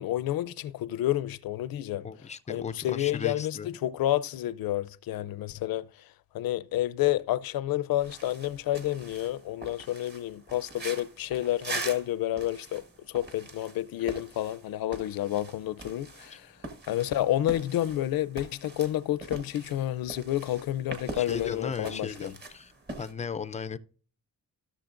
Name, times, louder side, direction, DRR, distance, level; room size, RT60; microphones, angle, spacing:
voice 1, 0.0-2.1 2.5-5.9 6.3-16.5 16.9-22.3, left 13 dB, 75° left, 0.6 m, -30 dB
voice 2, 2.0-3.7 16.3-16.4 21.1-22.7 23.0-23.8, left 6 dB, 20° left, 0.4 m, -36 dB
sound 1, 8.0-23.1, right 2 dB, 30° right, 1.3 m, -43 dB
15.0 x 6.6 x 2.5 m
wide cardioid pair, 175°, 35 cm